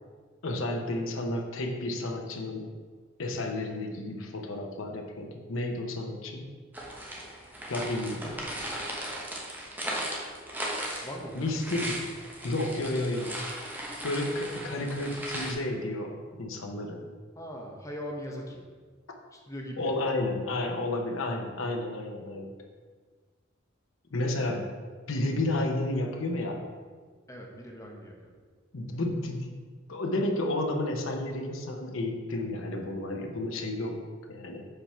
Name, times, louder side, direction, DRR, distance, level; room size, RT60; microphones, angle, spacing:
voice 1, 0.4-2.7 3.2-6.5 7.7-8.4 11.3-12.0 12.4-13.4 14.0-17.0 19.8-22.5 24.1-24.7 25.1-26.7 28.7-29.6 29.9-34.7, left 2 dB, 80° left, 3 dB, 0.8 m, -31 dB
sound 1, 6.7-15.5, right 1 dB, 10° right, 1.0 m, -37 dB
voice 2, 8.1-8.5 11.0-11.5 17.4-18.6 19.3-19.9 27.3-28.3, equal, 15° left, 0 dB, 0.9 m, -40 dB
5.2 x 4.4 x 5.7 m, 1.5 s
head